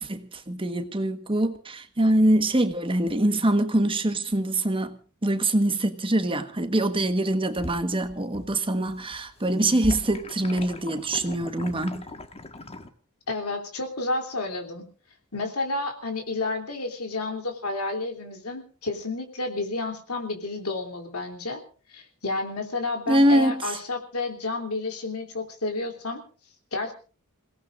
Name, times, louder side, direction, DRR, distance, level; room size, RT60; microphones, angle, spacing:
voice 1, 0.0-12.1 23.1-23.8, right 1 dB, 25° right, 1.4 m, -24 dB
sound 1, 7.0-8.6 8.9-12.9, left 1 dB, 30° left, 1.6 m, -39 dB
voice 2, 13.3-14.9 15.3-21.6 21.9-26.2 26.7-26.9, left 2 dB, 90° left, 3.3 m, -31 dB
28.0 x 18.0 x 2.5 m
head